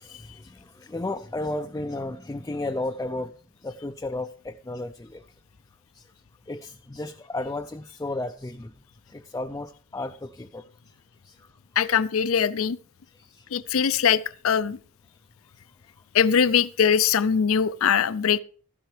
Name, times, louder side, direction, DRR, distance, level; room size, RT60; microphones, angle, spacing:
voice 1, 0.0-3.3 3.6-5.2 5.9-6.0 6.5-8.7 9.1-10.6 11.2-11.3 13.2-13.5, left 2 dB, 15° left, 0.4 m, -33 dB
voice 2, 11.8-12.8 13.5-14.8 16.1-18.4, left 7 dB, 75° left, 0.5 m, -22 dB
12.5 x 10.5 x 3.3 m
head